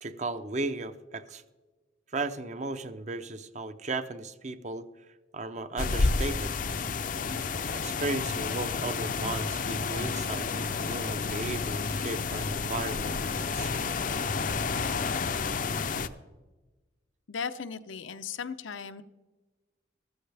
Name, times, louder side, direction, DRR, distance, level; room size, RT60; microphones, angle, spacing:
voice 1, 0.0-1.4 2.1-4.9 5.3-6.5 7.7-13.9, right 2 dB, 35° right, 11 dB, 0.6 m, -35 dB
sound 1, 5.8-16.1, left 4 dB, 45° left, 0.5 m, -30 dB
voice 2, 17.3-19.0, left 6 dB, 85° left, 10 dB, 0.7 m, -37 dB
14.5 x 14.0 x 3.4 m, 1.2 s
head